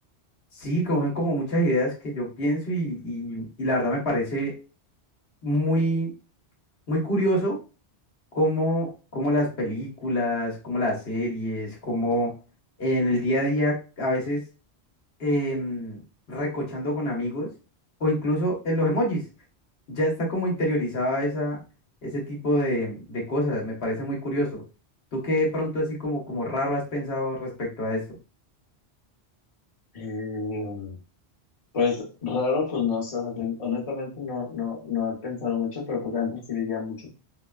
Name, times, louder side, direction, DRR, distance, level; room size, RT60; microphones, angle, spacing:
voice 1, 0.5-4.5 5.4-6.1 6.9-7.6 8.3-12.3 12.8-14.4 15.2-16.0 16.3-17.5 18.0-19.2 19.9-21.6 22.0-24.6 25.1-28.0, equal, 65° left, -2 dB, 1.2 m, -26 dB
voice 2, 29.9-31.0 31.7-37.1, left 5 dB, 35° left, -3 dB, 1.0 m, -28 dB
4.2 x 2.2 x 2.3 m, 0.34 s
omnidirectional pair, 1.1 m